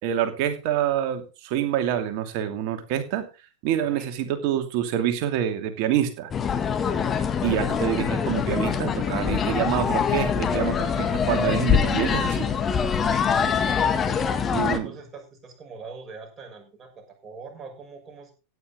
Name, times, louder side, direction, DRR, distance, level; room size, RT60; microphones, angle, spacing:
voice 1, 0.0-3.3 3.6-6.3 7.4-12.5 14.5-14.9, right 10 dB, 45° right, 7 dB, 2.7 m, -26 dB
sound 1, 6.3-14.8, left 7 dB, 20° left, 1.7 m, -24 dB
voice 2, 13.6-18.3, right 4 dB, 20° right, 3 dB, 6.3 m, -44 dB
15.5 x 10.0 x 3.8 m, 0.31 s
figure-of-eight pair, 90°, 0 cm